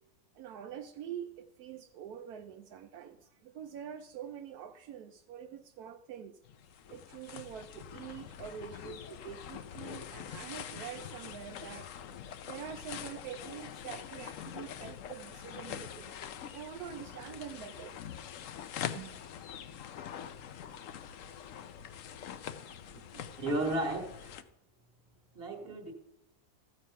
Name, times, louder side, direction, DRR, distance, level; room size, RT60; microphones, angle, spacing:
voice 1, 0.3-6.4 6.9-11.9 12.4-16.1 16.5-18.0 18.9-19.1 22.9-23.4 25.6-25.8, right 9 dB, 80° right, 1.1 m, -45 dB
sound 1, 6.4-24.4, left 9 dB, 65° left, 0.9 m, -44 dB
voice 2, 23.4-24.3 25.3-25.9, right 1 dB, 40° right, 1.6 m, -33 dB
14.0 x 7.4 x 5.6 m
omnidirectional pair, 1.6 m